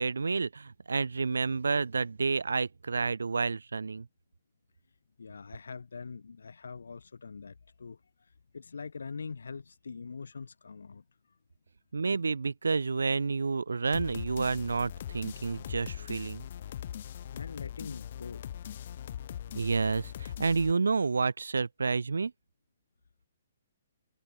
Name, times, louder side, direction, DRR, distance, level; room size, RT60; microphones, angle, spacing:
voice 1, 0.0-4.1 11.9-16.5 19.5-22.3, right 4 dB, 90° right, 0.3 m, -29 dB
voice 2, 5.2-11.0 17.3-18.5, left 5 dB, 85° left, 1.4 m, -43 dB
sound 1, 13.9-20.7, left 10 dB, 55° left, 1.1 m, -41 dB
hypercardioid pair, 140°, 0 cm